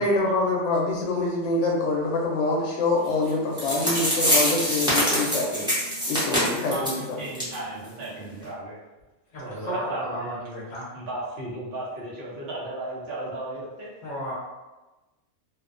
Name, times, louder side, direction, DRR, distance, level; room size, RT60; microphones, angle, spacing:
voice 1, 0.0-5.6 6.1-6.9, left 2 dB, 75° left, -2 dB, 0.9 m, -25 dB
sound 1, 3.3-3.4 3.6-7.0 7.3-7.5 7.8-7.9 8.4-8.5, equal, 5° right, 0.6 m, -24 dB
voice 2, 6.7-8.8 9.4-10.4 10.9-13.9, right 1 dB, 65° right, -7 dB, 0.9 m, -35 dB
voice 3, 9.3-10.9 14.0-14.3, equal, 45° left, -10 dB, 0.8 m, -34 dB
2.5 x 2.1 x 2.5 m, 1.1 s
omnidirectional pair, 1.3 m